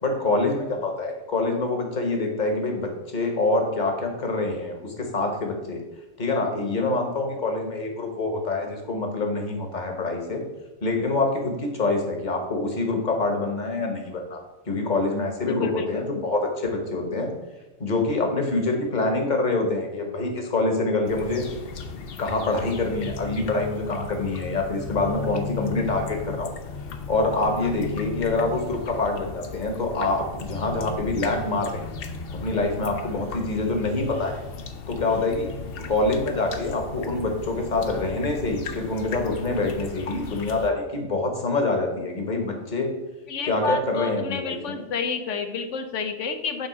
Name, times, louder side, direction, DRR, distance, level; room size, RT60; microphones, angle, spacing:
voice 1, 0.0-5.8 6.2-10.4 10.8-17.3 17.8-21.4 22.2-26.5 27.1-31.9 32.3-34.4 34.9-35.5 35.9-42.9 43.5-44.8, left 2 dB, 40° left, 3 dB, 1.2 m, -26 dB
voice 2, 15.4-16.0 27.6-27.7 43.3-46.7, left 4 dB, 70° left, 8 dB, 1.1 m, -30 dB
sound 1, 21.1-40.7, left 4 dB, 55° left, 0.8 m, -36 dB
8.5 x 3.6 x 4.9 m, 1.1 s
omnidirectional pair, 1.3 m